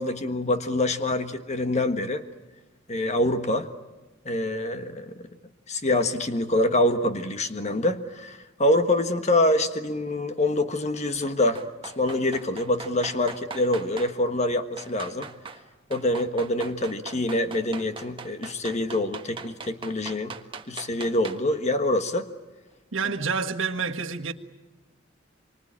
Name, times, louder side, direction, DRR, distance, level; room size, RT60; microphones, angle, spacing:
voice 1, 0.0-2.2 2.9-3.7 4.2-5.3 5.7-15.3 15.9-20.4 20.7-22.3, left 1 dB, 35° left, 1.5 m, -25 dB
sound 1, 11.2-14.1 14.8-15.6 15.9-21.6 21.9-22.0, right 4 dB, 25° right, 1.4 m, -40 dB
voice 2, 22.9-24.3, right 5 dB, 75° right, 1.6 m, -28 dB
26.5 x 24.5 x 8.8 m
head